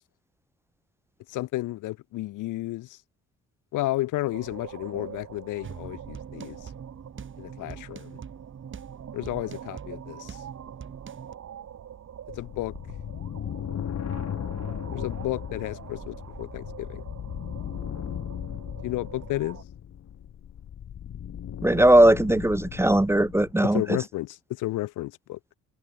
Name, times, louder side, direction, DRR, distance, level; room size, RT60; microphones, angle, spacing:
voice 1, 1.3-3.0 3.7-6.7 7.4-8.2 9.1-10.4 12.4-12.7 14.9-17.0 18.8-19.6 23.7-25.4, left 17 dB, 90° left, 1.4 m, -32 dB
sound 1, 4.3-19.6, right 9 dB, 60° right, 3.2 m, -45 dB
sound 2, 5.6-11.3, right 7 dB, 40° right, 1.9 m, -43 dB
sound 3, 12.3-23.5, left 9 dB, 60° left, 3.6 m, -36 dB
voice 2, 21.6-24.0, right 1 dB, 10° right, 1.0 m, -19 dB
cardioid pair, 90°, 30 cm